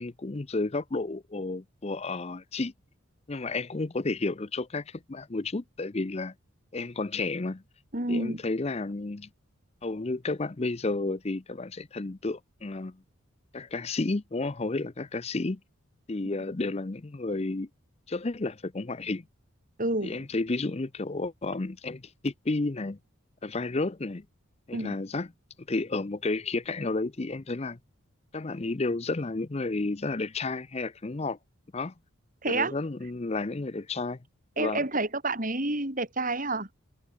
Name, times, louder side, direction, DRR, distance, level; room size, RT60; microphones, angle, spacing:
voice 1, 0.0-2.7 3.3-6.3 6.7-7.6 8.1-9.3 9.8-13.0 13.5-15.6 16.1-17.7 18.1-19.2 20.0-23.0 23.4-24.3 24.7-25.3 25.7-27.8 28.3-31.4 31.7-31.9 32.5-34.2 34.6-34.8, left 3 dB, 30° left, 0.6 m, -31 dB
voice 2, 7.9-8.4 19.8-20.2 24.7-25.0 32.4-32.7 34.6-36.7, right 2 dB, 40° right, 4.1 m, -29 dB
head